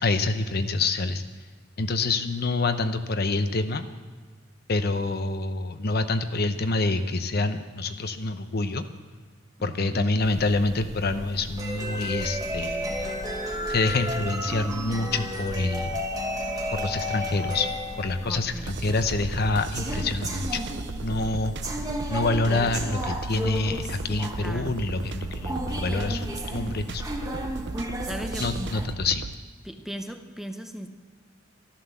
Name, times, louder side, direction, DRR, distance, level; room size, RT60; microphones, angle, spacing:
voice 1, 0.0-1.2 1.8-3.9 4.7-8.8 9.6-13.2 13.7-16.0 16.7-17.7 18.0-20.6 21.0-21.8 22.1-26.2 26.5-27.0 28.4-29.2, left 3 dB, 50° left, 9 dB, 0.8 m, -27 dB
voice 2, 9.6-10.0 18.2-18.7 24.4-24.7 28.0-28.7 29.6-30.9, equal, ahead, 6 dB, 0.8 m, -37 dB
sound 1, 10.2-28.9, equal, 20° right, 1.3 m, -33 dB
sound 2, 18.7-29.3, right 4 dB, 55° right, 0.5 m, -37 dB
13.0 x 11.5 x 7.1 m, 1.5 s
head